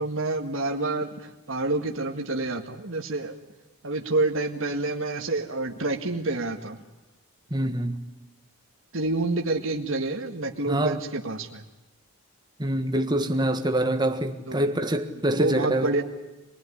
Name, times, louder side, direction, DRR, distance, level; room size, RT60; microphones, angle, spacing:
voice 1, 0.0-3.3 3.8-6.8 8.9-11.6 14.5-14.6 15.3-16.0, right 2 dB, 60° right, 1.9 m, -28 dB
voice 2, 7.5-8.0 10.7-11.0 12.6-15.9, right 1 dB, 20° right, 1.6 m, -25 dB
26.0 x 19.5 x 10.0 m
head